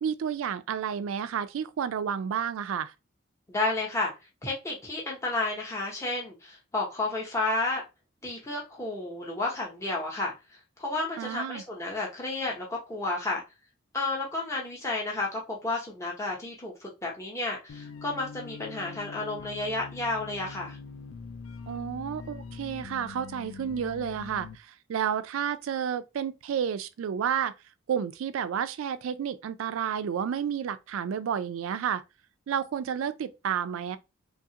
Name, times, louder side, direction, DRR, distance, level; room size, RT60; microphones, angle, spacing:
voice 1, 0.0-2.9 11.2-11.6 21.7-27.5 27.9-32.0 32.5-34.0, right 8 dB, 75° right, 0.3 m, -31 dB
voice 2, 3.5-4.1 4.4-7.8 8.2-10.3 10.8-13.4 13.9-20.8, left 2 dB, 15° left, 0.7 m, -31 dB
sound 1, 17.7-24.5, left 5 dB, 75° left, 0.3 m, -43 dB
3.1 x 2.3 x 2.8 m
head